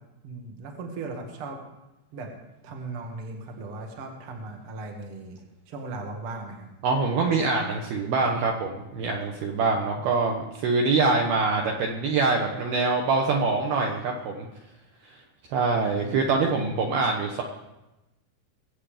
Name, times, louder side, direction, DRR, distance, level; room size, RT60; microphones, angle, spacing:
voice 1, 0.2-1.6 2.1-2.3 2.6-5.4 5.7-6.7 15.7-16.2, right 3 dB, 55° right, 2 dB, 1.6 m, -37 dB
voice 2, 6.8-14.5 15.5-17.4, right 4 dB, 70° right, 1 dB, 2.4 m, -24 dB
23.0 x 8.3 x 5.0 m, 0.98 s
omnidirectional pair, 5.7 m